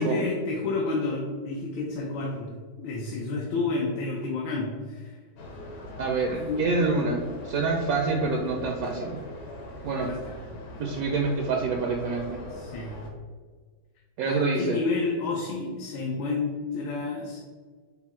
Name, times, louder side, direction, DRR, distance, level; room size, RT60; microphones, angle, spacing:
voice 1, 0.0-2.5 2.8-5.2 6.3-6.7 9.9-10.4 12.5-13.0 14.3-17.4, left 3 dB, 80° left, -2 dB, 1.5 m, -30 dB
sound 1, 5.4-13.1, left 1 dB, 60° left, 1.2 m, -41 dB
voice 2, 6.0-9.2 9.8-10.1 10.8-12.4 14.2-14.8, right 3 dB, 75° right, 1 dB, 0.8 m, -26 dB
5.8 x 2.0 x 4.2 m, 1.5 s
omnidirectional pair, 2.1 m